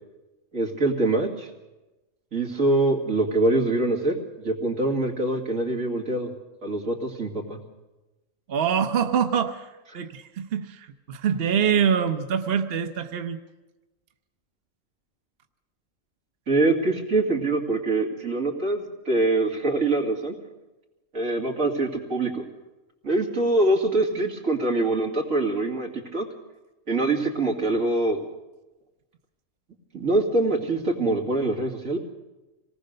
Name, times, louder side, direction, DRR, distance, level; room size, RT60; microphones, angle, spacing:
voice 1, 0.5-1.5 2.3-6.3 6.6-7.6 16.5-20.4 21.1-22.4 23.0-26.3 26.9-28.2 29.9-32.0, right 2 dB, 85° right, 1 dB, 3.1 m, -24 dB
voice 2, 8.5-13.4, right 7 dB, 50° right, 7 dB, 1.1 m, -25 dB
26.0 x 19.0 x 6.7 m, 1.1 s
omnidirectional pair, 1.3 m